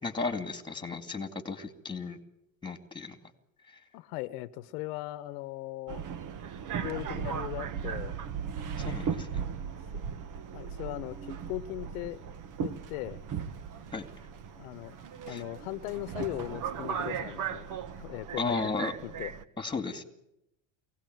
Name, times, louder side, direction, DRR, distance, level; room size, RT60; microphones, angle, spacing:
voice 1, 0.0-2.2 2.6-3.2 8.8-9.4 13.9-14.0 15.3-15.4 18.4-18.9 19.6-20.0, left 4 dB, 10° left, 9 dB, 2.4 m, -34 dB
voice 2, 3.9-6.0 6.8-8.2 10.5-12.2 12.6-13.2 14.5-15.0 15.2-17.7 18.0-18.7 19.0-19.3, left 17 dB, 85° left, 14 dB, 1.2 m, -38 dB
Subway metro underground, 5.9-19.4, right 7 dB, 45° right, 1.5 m, -37 dB
23.5 x 17.5 x 9.3 m, 0.83 s
supercardioid pair, 125°, 43 cm